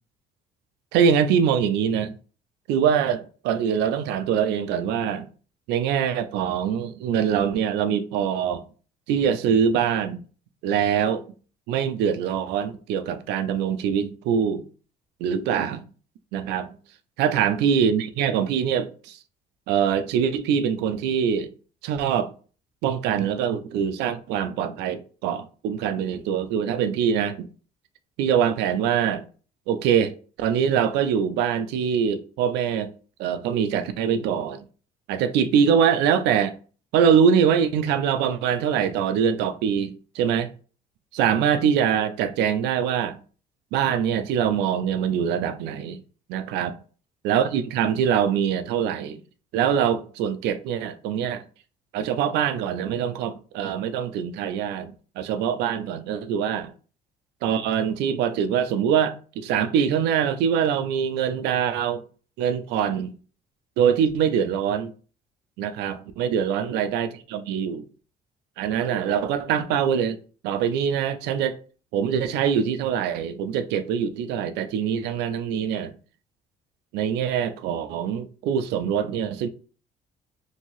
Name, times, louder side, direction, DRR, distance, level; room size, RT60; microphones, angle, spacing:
voice 1, 0.9-2.1 2.7-5.3 5.7-8.6 9.1-10.2 10.6-11.2 11.7-14.7 15.2-15.9 16.3-16.7 17.2-19.2 19.7-21.5 21.8-22.3 22.8-27.5 28.2-29.2 29.7-32.9 33.2-34.6 35.1-36.6 36.9-40.5 41.1-43.2 43.7-46.0 46.3-46.7 47.2-49.2 49.5-51.4 51.9-56.7 57.4-62.0 62.4-63.1 63.8-64.9 65.6-67.8 68.6-70.2 70.4-71.6 71.9-75.9 76.9-79.5, right 8 dB, 85° right, 0.4 m, -23 dB
2.8 x 2.7 x 3.0 m
cardioid pair, 110°, 17 cm